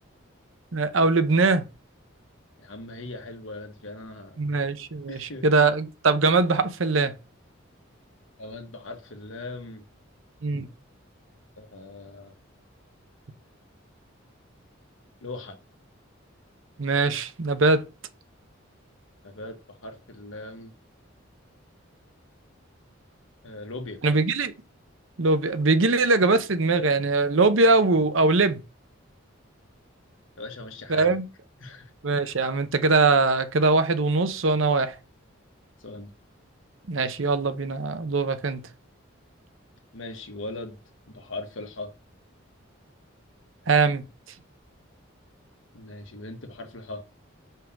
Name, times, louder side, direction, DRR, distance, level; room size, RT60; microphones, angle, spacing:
voice 1, 0.7-1.6 4.4-7.1 10.4-10.7 16.8-17.8 24.0-24.5 25.2-28.6 30.9-31.2 32.0-35.0 36.9-38.6 43.7-44.0, right 3 dB, 70° right, 0.8 m, -22 dB
voice 2, 2.6-4.6 5.1-5.5 8.4-9.8 11.6-12.3 15.2-15.6 19.2-20.7 23.4-24.0 30.4-31.2 31.6-31.9 35.8-36.1 39.9-40.8 41.1-41.9 45.7-47.0, left 2 dB, 75° left, 1.4 m, -39 dB
5.6 x 3.7 x 5.9 m
head